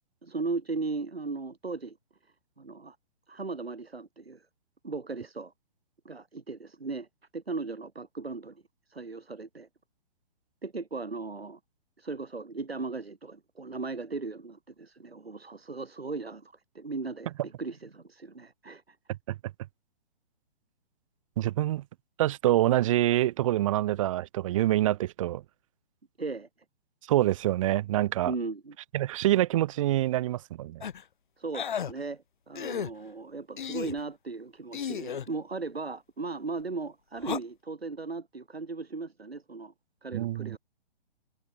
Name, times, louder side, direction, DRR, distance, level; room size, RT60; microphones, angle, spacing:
voice 1, 0.2-2.0 2.6-3.0 3.3-4.5 4.8-5.5 6.0-7.1 7.3-8.6 8.9-9.7 10.6-11.6 12.0-19.0 26.2-26.5 28.2-28.8 31.4-39.7 40.0-40.6, right 3 dB, 75° right, 4.4 m, -37 dB
voice 2, 21.4-21.8 22.2-25.4 27.1-28.3 28.9-30.8 40.1-40.6, right 14 dB, 30° right, 1.2 m, -26 dB
sound 1, 30.8-31.0 31.5-31.9 32.5-32.9 33.6-34.0 34.7-35.3 37.2-37.4, left 8 dB, 50° left, 2.6 m, -34 dB
figure-of-eight pair, 125°, 31 cm